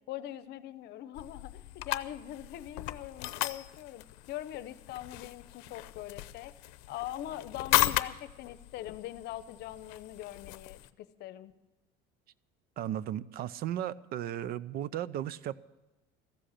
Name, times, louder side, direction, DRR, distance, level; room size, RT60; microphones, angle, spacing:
voice 1, 0.1-6.5 6.9-11.5, left 13 dB, 55° left, 0.8 m, -42 dB
sound 1, 1.2-10.9, left 18 dB, 90° left, 0.6 m, -36 dB
voice 2, 12.8-15.6, right 11 dB, 50° right, 0.5 m, -35 dB
14.5 x 7.8 x 8.5 m
cardioid pair, 135°, 20 cm